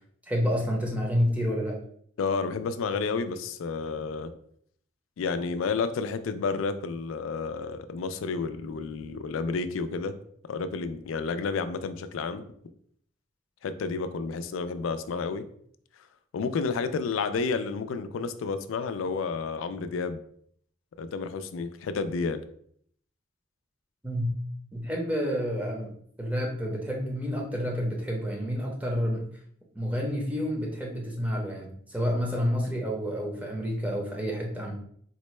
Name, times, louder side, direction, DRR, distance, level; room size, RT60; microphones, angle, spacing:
voice 1, 0.3-1.8 24.0-24.4 24.7-25.9 26.2-29.3 29.7-34.7, equal, 5° right, -2 dB, 0.6 m, -29 dB
voice 2, 2.2-4.3 5.2-10.1 10.4-12.4 13.6-15.4 16.3-20.2 21.0-22.4, left 4 dB, 90° left, 10 dB, 0.3 m, -30 dB
4.2 x 2.1 x 3.0 m, 0.64 s
head